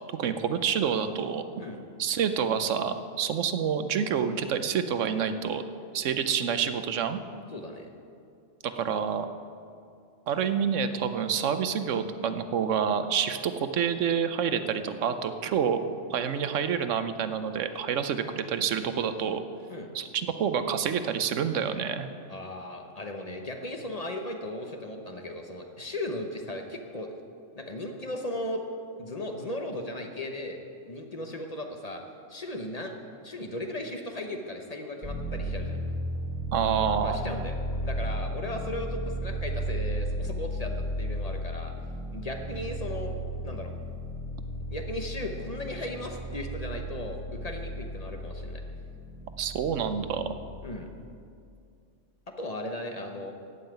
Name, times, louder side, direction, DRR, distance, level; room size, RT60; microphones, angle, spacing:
voice 1, 0.2-1.5 2.0-5.6 5.9-7.2 8.6-9.3 10.3-15.8 16.1-19.4 19.9-22.1 36.5-37.2 49.4-50.2, right 7 dB, 85° right, 10 dB, 1.1 m, -28 dB
voice 2, 7.5-7.9 19.7-19.9 22.3-27.1 27.5-28.6 29.0-30.6 30.9-32.0 32.3-32.9 33.2-35.8 37.0-37.5 37.8-41.7 42.1-43.1 43.4-43.7 44.7-48.6 50.6-50.9 52.4-53.3, left 1 dB, 35° left, 4 dB, 0.9 m, -36 dB
sound 1, 35.0-50.6, equal, 25° right, 2.0 m, -34 dB
14.5 x 5.6 x 9.1 m, 2.4 s
omnidirectional pair, 1.2 m